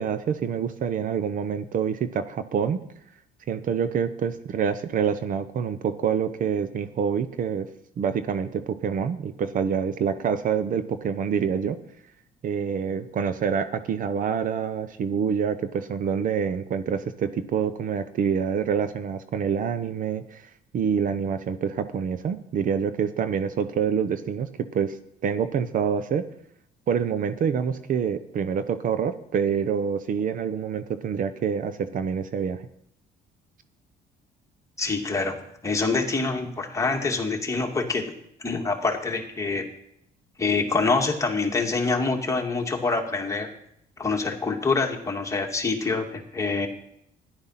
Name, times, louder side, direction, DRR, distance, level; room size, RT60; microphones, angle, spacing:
voice 1, 0.0-2.8 3.5-7.7 8.0-11.8 12.4-20.5 20.7-25.0 25.2-26.2 26.9-32.7, right 7 dB, 50° right, 11 dB, 0.8 m, -26 dB
voice 2, 34.8-38.1 38.4-39.7 40.4-43.5 44.0-46.7, left 3 dB, 20° left, 1 dB, 2.2 m, -26 dB
13.5 x 11.0 x 5.8 m, 0.75 s
cardioid pair, 110°, 17 cm